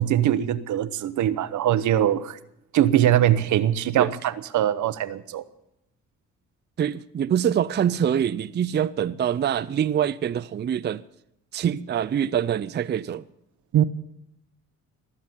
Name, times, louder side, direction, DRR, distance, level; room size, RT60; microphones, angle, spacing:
voice 1, 0.0-2.4 2.7-5.4 13.7-13.8, right 11 dB, 75° right, 0.9 m, -22 dB
voice 2, 6.8-11.0 11.5-13.2, right 9 dB, 35° right, 0.5 m, -25 dB
19.0 x 7.4 x 9.6 m
cardioid pair, 90°, 30 cm